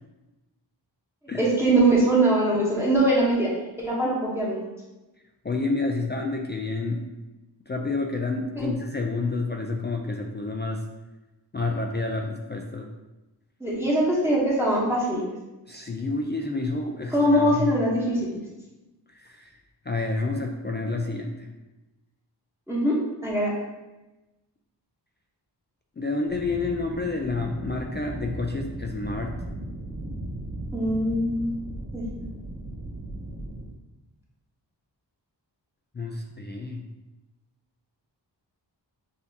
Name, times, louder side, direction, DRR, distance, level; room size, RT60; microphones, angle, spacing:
voice 1, 1.3-3.5 3.8-4.6 8.6-8.7 13.6-15.2 17.1-18.4 22.7-23.0 23.2-23.5 30.7-31.5 31.9-32.0, right 1 dB, 5° right, -6 dB, 0.9 m, -22 dB
voice 2, 5.4-7.1 7.7-10.8 11.5-12.9 15.7-17.7 19.1-19.6 19.9-21.5 26.0-29.4 35.9-36.8, left 3 dB, 25° left, 1 dB, 0.3 m, -29 dB
sound 1, 26.3-33.6, right 1 dB, 25° right, 1.4 m, -36 dB
6.4 x 2.7 x 2.7 m, 1.0 s
wide cardioid pair, 95°, 43 cm